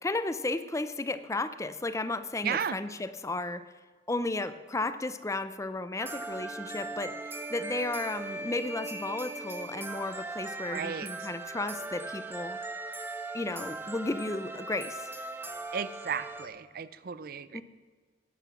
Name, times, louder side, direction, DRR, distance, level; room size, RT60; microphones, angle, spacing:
voice 1, 0.0-3.6 4.1-12.6 13.3-15.1 17.5-17.6, left 2 dB, 15° left, 12 dB, 0.5 m, -34 dB
voice 2, 2.4-2.8 10.7-11.3 15.7-17.6, right 7 dB, 55° right, 16 dB, 0.5 m, -34 dB
sound 1, 6.0-16.5, right 2 dB, 15° right, 0.8 m, -39 dB
12.0 x 10.5 x 6.0 m, 1.4 s
head